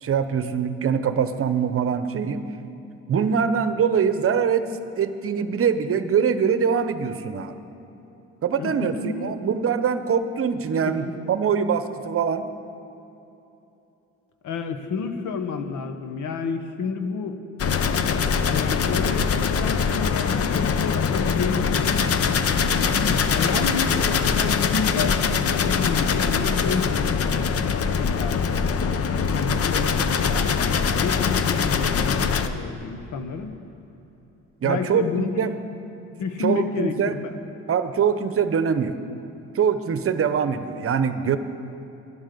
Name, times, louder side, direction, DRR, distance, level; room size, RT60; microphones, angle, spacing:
voice 1, 0.0-2.4 3.1-4.7 5.0-7.5 8.4-12.5 34.6-35.5 36.4-37.2 37.7-39.0 39.5-41.4, right 7 dB, 45° right, 10 dB, 0.9 m, -23 dB
voice 2, 8.6-9.3 11.1-11.2 14.4-17.4 18.4-22.1 22.9-27.0 28.0-28.4 29.3-30.6 31.0-33.5 34.6-35.5 36.2-37.4, left 5 dB, 80° left, 7 dB, 1.1 m, -29 dB
sound 1, 17.6-32.5, left 6 dB, 50° left, 0.8 m, -23 dB
11.5 x 11.0 x 6.8 m, 3.0 s
cardioid pair, 90°, 30 cm